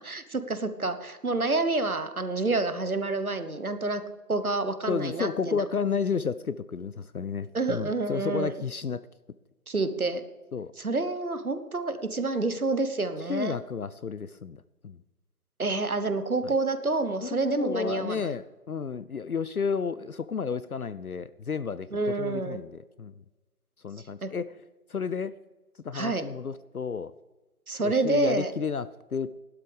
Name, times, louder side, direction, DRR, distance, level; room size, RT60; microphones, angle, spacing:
voice 1, 0.0-4.0 4.3-5.6 7.5-8.5 9.7-10.2 10.8-13.6 15.6-18.3 21.9-22.6 24.2-24.3 25.9-26.2 27.7-28.5, right 3 dB, 65° right, 10 dB, 1.2 m, -28 dB
voice 2, 4.9-9.0 10.5-10.7 13.3-15.0 17.2-23.1 23.8-24.5 24.9-25.4 25.8-27.1 27.8-29.4, left 6 dB, 70° left, 16 dB, 0.5 m, -32 dB
16.0 x 12.0 x 3.4 m, 1.2 s
figure-of-eight pair, 170°, 46 cm